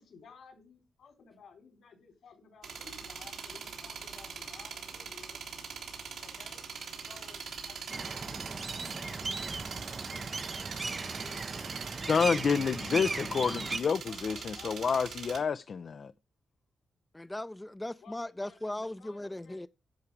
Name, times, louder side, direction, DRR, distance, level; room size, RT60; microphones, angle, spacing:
voice 1, 0.0-5.5 6.2-6.8 7.1-9.9 10.7-13.7 14.0-14.8 15.2-15.5 18.0-19.6, left 5 dB, 80° left, 4.3 m, -56 dB
sound 1, 2.6-15.4, right 6 dB, 90° right, 3.0 m, -42 dB
sound 2, 7.9-13.8, right 3 dB, 40° right, 0.6 m, -37 dB
voice 2, 12.0-16.1, left 6 dB, 65° left, 0.5 m, -29 dB
voice 3, 17.1-19.7, left 1 dB, 15° left, 0.5 m, -38 dB
11.0 x 4.7 x 8.2 m
cardioid pair, 55°, 0 cm